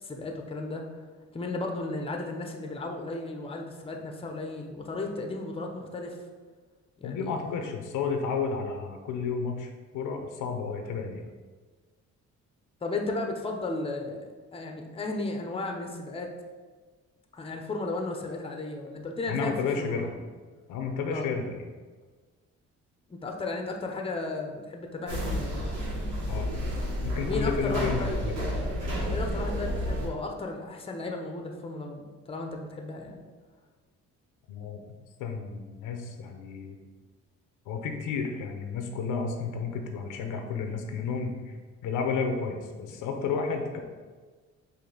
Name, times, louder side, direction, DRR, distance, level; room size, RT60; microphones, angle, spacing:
voice 1, 0.0-0.8 1.3-6.2 7.0-7.5 12.8-16.3 17.3-20.1 21.1-21.3 23.1-25.7 27.3-28.2 29.1-33.2, left 2 dB, 20° left, 3 dB, 0.6 m, -35 dB
voice 2, 7.0-11.2 19.3-20.2 20.7-21.7 26.3-26.6 27.0-28.5 34.5-34.8 35.2-36.8 37.7-41.6 41.8-43.8, left 5 dB, 90° left, 4 dB, 0.7 m, -32 dB
sound 1, 25.1-30.1, equal, 80° right, 1.5 m, -30 dB
4.9 x 2.6 x 3.9 m, 1.4 s
cardioid pair, 90°, 30 cm